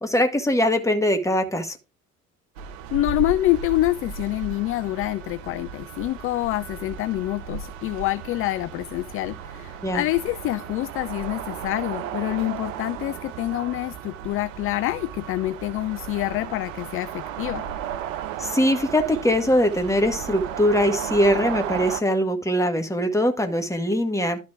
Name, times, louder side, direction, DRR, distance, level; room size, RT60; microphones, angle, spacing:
voice 1, 0.0-1.8 9.8-10.0 18.4-24.4, equal, 5° left, 1.8 m, -22 dB
sound 1, 2.6-22.0, right 8 dB, 65° right, 0.9 m, -35 dB
voice 2, 2.9-17.7, left 16 dB, 35° left, 0.4 m, -26 dB
12.0 x 4.3 x 4.8 m
figure-of-eight pair, 60°, 41 cm